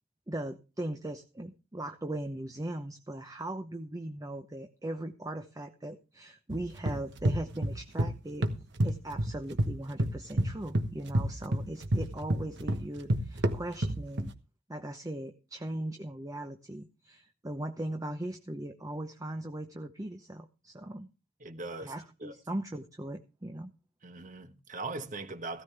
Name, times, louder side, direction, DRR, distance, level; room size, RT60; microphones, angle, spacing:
voice 1, 0.3-8.5 8.8-14.3 14.7-21.1 21.8-23.7, right 1 dB, 20° right, 0.8 m, -39 dB
sound 1, 6.5-8.1 8.4-9.7 10.0-14.3, right 1 dB, 65° right, 1.2 m, -29 dB
voice 2, 21.4-21.9 22.2-22.3 24.0-25.6, right 3 dB, 40° right, 1.3 m, -40 dB
16.0 x 13.5 x 3.4 m
head